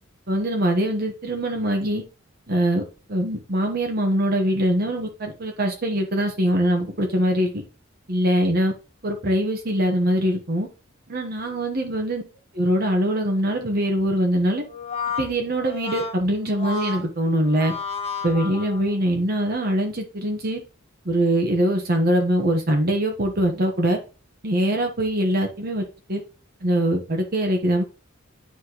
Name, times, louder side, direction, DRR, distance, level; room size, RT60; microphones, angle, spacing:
voice 1, 0.3-2.0 2.5-7.5 8.1-8.7 9.0-10.7 11.1-12.2 12.5-14.6 15.2-17.7 18.2-20.6 21.0-24.0 24.4-26.2 26.6-27.8, right 1 dB, 50° right, 2 dB, 1.1 m, -23 dB
Brass instrument, 14.6-19.1, left 5 dB, 30° left, 1.5 m, -32 dB
9.8 x 4.3 x 3.0 m, 0.34 s
head